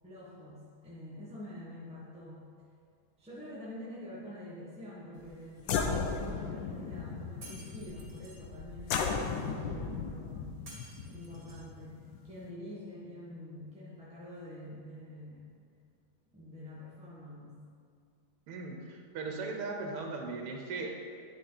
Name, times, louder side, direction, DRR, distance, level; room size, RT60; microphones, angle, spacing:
voice 1, 0.0-2.5 3.2-10.6 11.0-15.5 16.3-17.6, left 1 dB, 5° right, -9 dB, 0.9 m, -46 dB
sound 1, 5.2-5.3 5.6-12.5, left 5 dB, 70° left, 1.1 m, -36 dB
Shatter, 7.4-8.4 10.7-11.7, right 2 dB, 60° right, 2.8 m, -52 dB
voice 2, 18.5-21.2, right 3 dB, 85° right, 2 dB, 1.9 m, -38 dB
10.5 x 4.8 x 4.0 m, 2.2 s
omnidirectional pair, 2.4 m